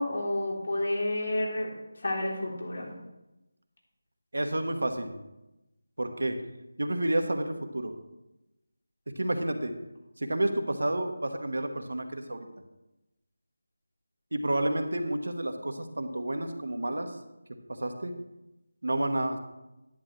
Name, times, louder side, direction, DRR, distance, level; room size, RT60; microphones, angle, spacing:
voice 1, 0.0-1.7 2.0-2.9, left 1 dB, 65° left, -2 dB, 3.5 m, -30 dB
voice 2, 4.3-5.2 6.0-6.4 6.8-7.9 9.1-9.7 10.2-12.5 14.3-17.1 17.7-18.1 18.8-19.4, right 1 dB, 75° right, 6 dB, 1.3 m, -30 dB
10.5 x 9.8 x 3.2 m, 0.98 s
figure-of-eight pair, 165°, 0 cm